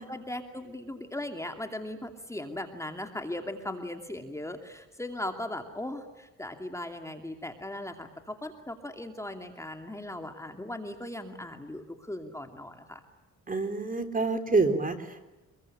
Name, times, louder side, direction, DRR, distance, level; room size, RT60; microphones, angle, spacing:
voice 1, 0.0-13.0, left 1 dB, 10° left, 5 dB, 2.6 m, -38 dB
voice 2, 13.5-15.2, right 3 dB, 30° right, 7 dB, 3.6 m, -27 dB
26.0 x 22.5 x 9.9 m, 1.0 s
cardioid pair, 90°, 30 cm